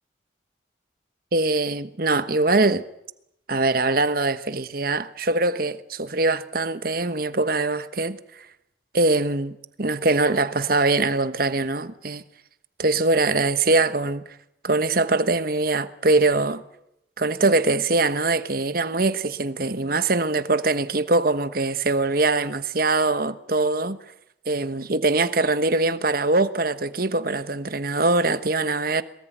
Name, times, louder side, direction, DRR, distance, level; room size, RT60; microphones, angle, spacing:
voice 1, 1.3-2.8 3.5-8.2 8.9-12.2 12.8-14.2 14.6-16.6 17.2-24.0 24.5-29.0, right 2 dB, 50° right, 1.2 m, -22 dB
23.0 x 20.5 x 9.2 m
head